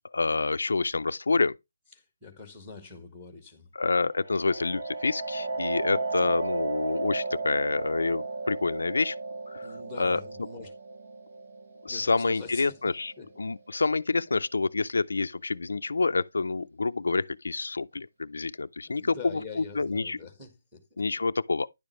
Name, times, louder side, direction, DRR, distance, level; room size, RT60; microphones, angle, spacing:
voice 1, 0.0-1.6 3.8-9.2 9.5-9.7 10.0-10.2 11.8-13.1 13.4-19.2 19.8-20.2 21.0-21.7, left 3 dB, 85° left, 0.4 m, -27 dB
voice 2, 1.9-4.1 9.6-10.7 11.9-12.8 13.2-13.3 18.8-21.0, left 4 dB, ahead, 1.5 m, -44 dB
sound 1, 4.1-13.6, right 3 dB, 35° right, 0.9 m, -34 dB
10.0 x 6.9 x 3.1 m
hypercardioid pair, 180°, 0 cm